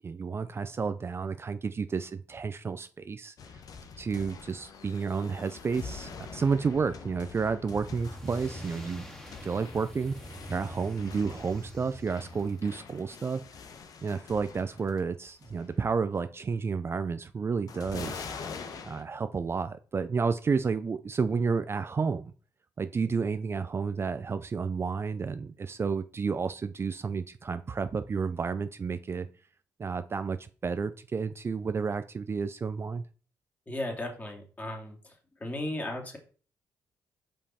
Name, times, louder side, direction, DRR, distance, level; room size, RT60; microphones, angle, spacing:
voice 1, 0.0-3.3 4.0-9.1 9.4-10.1 10.5-13.4 14.0-18.2 18.8-22.3 22.8-29.3 29.8-30.4 30.6-33.0, right 5 dB, 35° right, 11 dB, 0.4 m, -31 dB
sound 1, 3.4-15.0 15.3-15.8 17.7-19.0, left 5 dB, 65° left, 1.0 m, -45 dB
sound 2, 7.6-12.9, equal, 10° left, 1.9 m, -45 dB
voice 2, 33.7-35.1 35.4-36.2, left 1 dB, 25° left, 1 dB, 2.4 m, -35 dB
5.3 x 5.3 x 4.2 m, 0.39 s
supercardioid pair, 60°, 7 cm